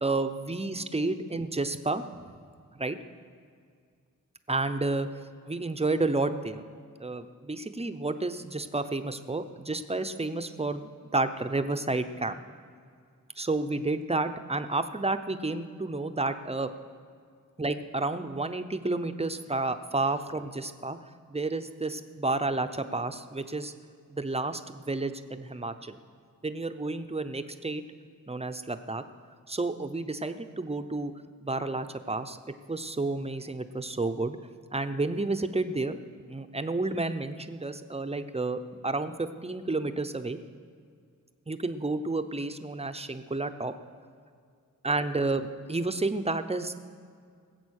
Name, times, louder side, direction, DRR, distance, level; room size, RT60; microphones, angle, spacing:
voice 1, 0.0-2.0 2.7-3.0 4.5-5.1 5.5-6.6 7.0-12.4 13.4-16.7 17.6-21.0 21.3-23.7 24.1-26.0 26.4-27.8 28.3-29.0 29.5-31.1 31.4-32.4 32.7-34.4 34.7-36.0 36.2-40.4 41.5-43.7 44.8-46.7, right 2 dB, 20° right, 9 dB, 0.7 m, -31 dB
20.0 x 8.0 x 6.4 m, 2.1 s
wide cardioid pair, 90°, 34 cm